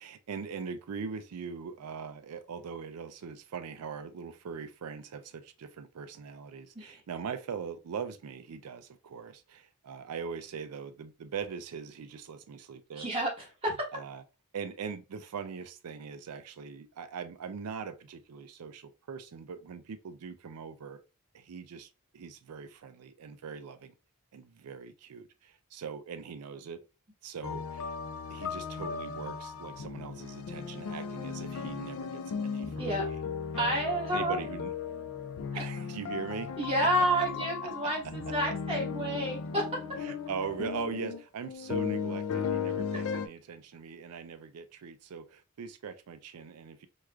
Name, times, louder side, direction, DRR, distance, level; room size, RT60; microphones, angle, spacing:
voice 1, 0.0-13.1 13.9-14.2 14.5-21.0 21.3-23.9 24.3-26.8 27.2-27.9 28.3-33.2 33.5-33.8 34.1-34.7 35.5-36.5 37.8-37.9 40.0-46.9, right 6 dB, 85° right, 0.4 m, -41 dB
voice 2, 13.0-13.9 32.8-33.1 33.6-34.4 35.5-35.6 36.6-39.7, right 1 dB, 25° right, 1.2 m, -30 dB
sound 1, 27.4-43.3, left 6 dB, 65° left, 0.4 m, -36 dB
4.6 x 2.3 x 2.3 m
head